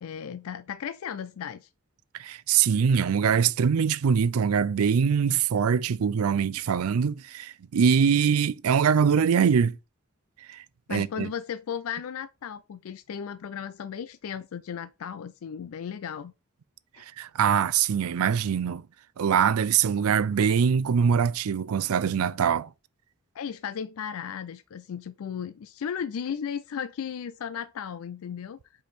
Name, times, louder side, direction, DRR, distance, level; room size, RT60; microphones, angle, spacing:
voice 1, 0.0-1.7 10.9-16.3 16.9-17.1 23.3-28.6, left 8 dB, 80° left, 0.4 m, -35 dB
voice 2, 2.2-9.8 10.5-10.6 10.9-11.3 17.2-18.9 19.2-22.7, right 7 dB, 85° right, 0.4 m, -23 dB
5.2 x 4.6 x 4.2 m
head